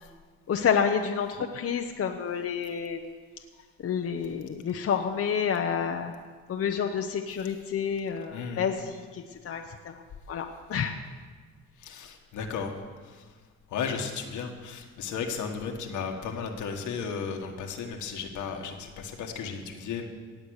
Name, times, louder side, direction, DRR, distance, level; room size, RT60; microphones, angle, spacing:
voice 1, 0.5-3.2 3.8-6.1 6.5-10.0 10.3-11.0, left 7 dB, 50° left, 4 dB, 0.9 m, -29 dB
voice 2, 8.3-8.7 11.8-12.7 13.0-13.3 13.7-20.1, left 6 dB, 80° left, 3 dB, 1.7 m, -35 dB
18.0 x 7.6 x 6.5 m, 1.5 s
cardioid pair, 90°, 30 cm